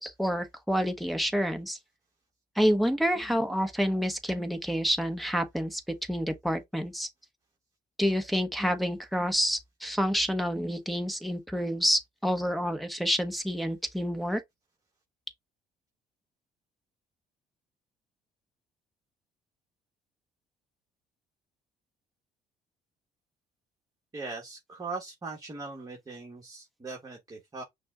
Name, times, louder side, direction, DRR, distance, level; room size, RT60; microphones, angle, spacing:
voice 1, 0.0-1.8 2.6-5.8 6.1-7.1 8.0-14.4, equal, ahead, 1.0 m, -28 dB
voice 2, 24.1-27.6, right 3 dB, 20° right, 1.4 m, -40 dB
5.9 x 2.3 x 3.6 m
cardioid pair, 110°, 17 cm